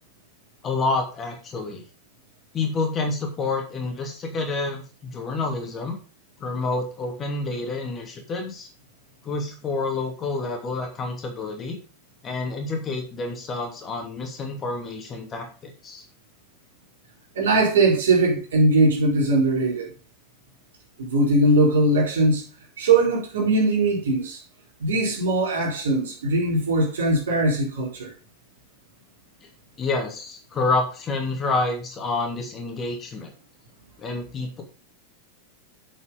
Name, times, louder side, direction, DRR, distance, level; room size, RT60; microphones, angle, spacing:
voice 1, 0.6-1.8 2.5-6.0 6.4-8.7 9.2-11.8 12.2-16.1 29.8-33.3 34.0-34.6, left 3 dB, 25° left, 2.8 m, -28 dB
voice 2, 17.4-19.9 21.0-22.4 22.8-24.4 24.8-28.1, right 2 dB, 60° right, 4.1 m, -20 dB
8.4 x 7.4 x 5.2 m
figure-of-eight pair, 90°, 0 cm